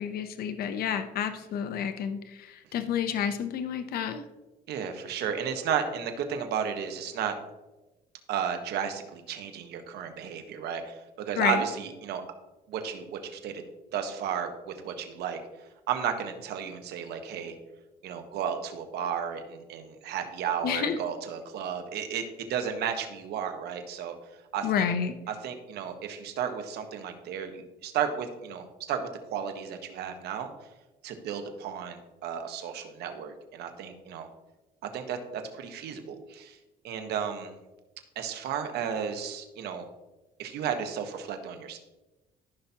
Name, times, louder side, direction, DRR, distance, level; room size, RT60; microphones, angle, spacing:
voice 1, 0.0-4.2 11.4-11.6 20.6-21.0 24.6-25.1, left 8 dB, 65° left, 9 dB, 0.7 m, -29 dB
voice 2, 4.7-7.4 8.3-12.2 12.7-13.6 13.9-15.4 15.9-17.5 18.0-24.1 24.5-24.9 25.4-30.5 31.0-34.3 34.9-36.6 36.8-37.5 38.1-39.9 40.4-41.8, right 8 dB, 75° right, 6 dB, 1.3 m, -33 dB
14.5 x 5.8 x 2.9 m, 1.1 s
cardioid pair, 110°, 17 cm